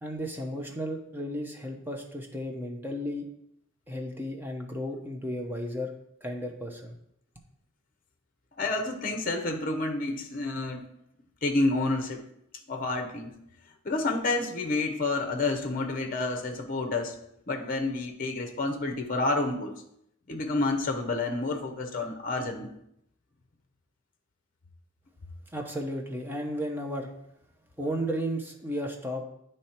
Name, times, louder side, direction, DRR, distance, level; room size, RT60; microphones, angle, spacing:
voice 1, 0.0-3.3 3.9-5.9 6.2-7.0 25.5-27.1 27.8-29.2, equal, 10° right, 1 dB, 0.7 m, -34 dB
voice 2, 8.6-10.9 11.4-12.2 12.7-13.3 13.8-17.1 17.5-19.8 20.3-22.7, left 2 dB, 40° left, 4 dB, 0.7 m, -29 dB
9.4 x 3.2 x 4.3 m, 0.76 s
head